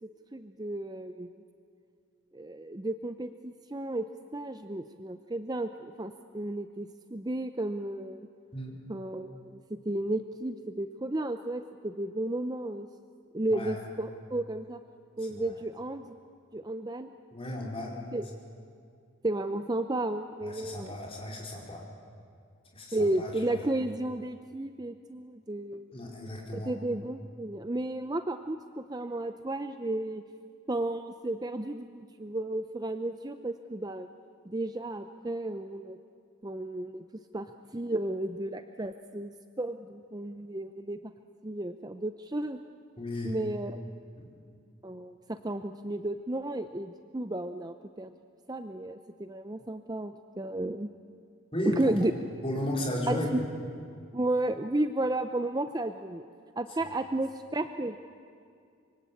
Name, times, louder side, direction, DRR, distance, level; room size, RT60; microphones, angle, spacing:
voice 1, 0.3-1.3 2.3-4.0 4.3-8.2 8.9-12.9 13.3-14.8 15.2-16.2 16.5-17.1 18.1-18.2 19.2-20.9 22.9-25.9 26.5-30.2 30.7-34.1 34.5-36.0 36.4-37.0 37.3-37.5 37.7-39.3 39.6-41.0 41.4-42.6 43.2-43.8 44.8-48.1 48.5-50.9 51.7-52.1 53.1-53.4 54.1-56.2 56.6-58.0, right 1 dB, 20° right, 8 dB, 0.6 m, -33 dB
voice 2, 13.5-13.8 15.3-15.5 17.3-18.0 20.4-21.9 22.7-23.6 25.9-26.8 43.0-43.4 44.2-44.3 51.5-52.1 52.4-53.3 56.9-57.0, left 1 dB, 25° left, -2 dB, 4.6 m, -35 dB
25.5 x 24.0 x 8.5 m, 2.3 s
head